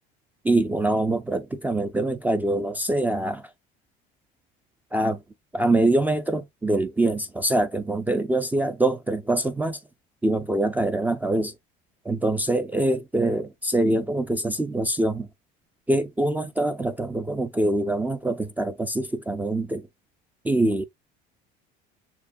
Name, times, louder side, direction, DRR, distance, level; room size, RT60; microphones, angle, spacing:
voice 1, 0.4-3.5 4.9-5.2 5.5-9.8 10.2-11.5 12.1-15.3 15.9-19.8 20.4-20.8, right 2 dB, 10° right, 0.4 m, -24 dB
6.9 x 2.3 x 2.5 m
cardioid pair, 140°, 21 cm